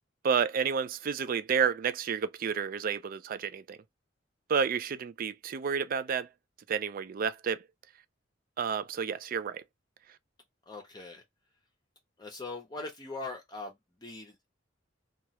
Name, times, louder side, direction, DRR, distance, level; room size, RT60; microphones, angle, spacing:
voice 1, 0.2-3.8 4.5-6.3 6.7-7.6 8.6-9.6, right 6 dB, 50° right, 0.3 m, -30 dB
voice 2, 10.7-11.2 12.2-13.8 14.0-14.5, left 3 dB, 20° left, 0.7 m, -41 dB
3.0 x 2.3 x 2.9 m
head